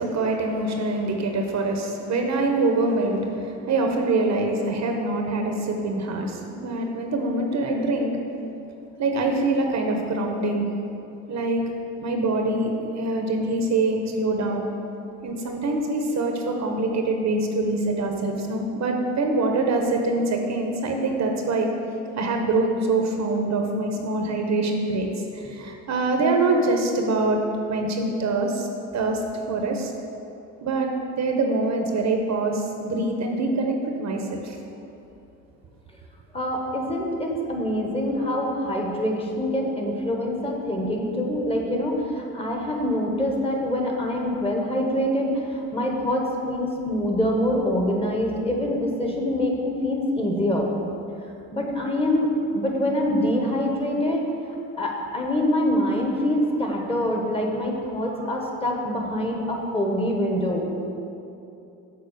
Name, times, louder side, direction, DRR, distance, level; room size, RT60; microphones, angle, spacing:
voice 1, 0.0-8.2 9.0-10.7 11.3-11.6 12.0-14.6 15.2-21.7 22.2-27.4 27.7-28.7 28.9-29.2 29.5-29.9 30.6-30.9 31.2-34.6, right 2 dB, 40° right, 3 dB, 1.0 m, -24 dB
voice 2, 36.3-50.7 51.5-54.2 54.8-60.7, left 1 dB, 15° left, 0 dB, 1.3 m, -25 dB
7.0 x 4.1 x 6.7 m, 2.8 s
supercardioid pair, 80°, 40 cm